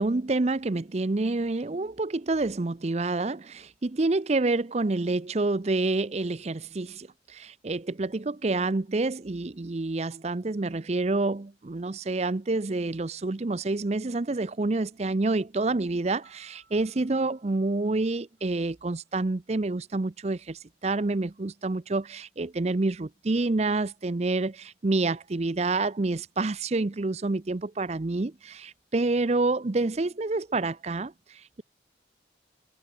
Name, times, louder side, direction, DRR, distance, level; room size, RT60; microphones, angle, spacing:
voice 1, 0.0-31.6, right 2 dB, 35° right, 0.6 m, -28 dB
Piano, 16.2-19.0, right 4 dB, 60° right, 6.1 m, -64 dB
head